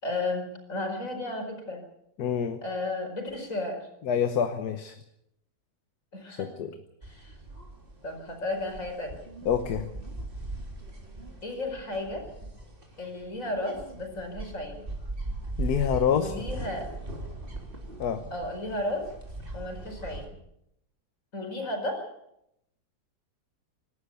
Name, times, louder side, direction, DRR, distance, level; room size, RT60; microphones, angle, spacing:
voice 1, 0.0-1.8 2.6-3.9 6.1-6.5 7.0-7.4 8.0-9.2 11.4-12.3 13.0-14.8 16.1-16.9 18.3-19.1 19.5-20.3 21.3-22.1, left 2 dB, 50° left, 4 dB, 5.3 m, -33 dB
voice 2, 2.2-2.6 4.0-4.9 6.4-6.7 9.4-9.9 15.6-16.3 18.0-18.2, left 8 dB, 70° left, 8 dB, 1.6 m, -27 dB
sound 1, 7.0-20.3, right 2 dB, 30° right, 3.7 m, -39 dB
26.0 x 12.5 x 8.3 m, 0.80 s
omnidirectional pair, 1.8 m